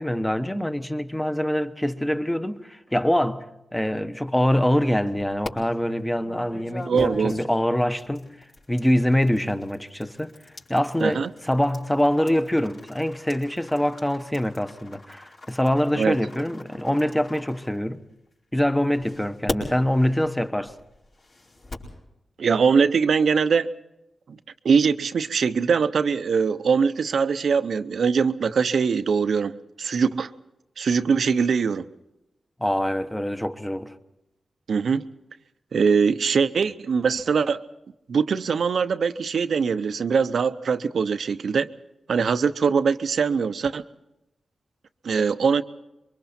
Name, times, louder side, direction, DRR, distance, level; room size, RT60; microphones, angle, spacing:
voice 1, 0.0-8.3 8.7-18.0 18.5-20.7 32.6-33.9, equal, 10° left, 1.1 m, -24 dB
sound 1, 4.6-5.5 6.2-18.3 18.9-22.0, left 2 dB, 55° left, 4.7 m, -40 dB
voice 2, 6.9-7.3 11.0-11.3 15.9-16.1 22.4-23.7 24.3-24.4 24.6-30.3 30.8-31.9 34.7-35.1 35.7-37.6 38.1-41.7 42.1-43.8 45.0-45.6, right 5 dB, 75° right, 0.7 m, -22 dB
27.0 x 23.5 x 4.3 m
cardioid pair, 85°, 0 cm